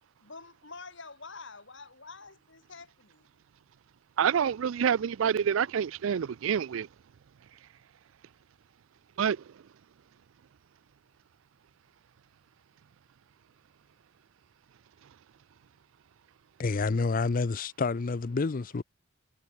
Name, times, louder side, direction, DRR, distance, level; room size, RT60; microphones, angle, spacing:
voice 1, 0.2-3.3, left 4 dB, 60° left, 5.9 m, -47 dB
voice 2, 4.2-6.9 9.2-9.4, right 8 dB, 75° right, 0.4 m, -27 dB
voice 3, 16.6-18.8, left 4 dB, 45° left, 0.5 m, -28 dB
head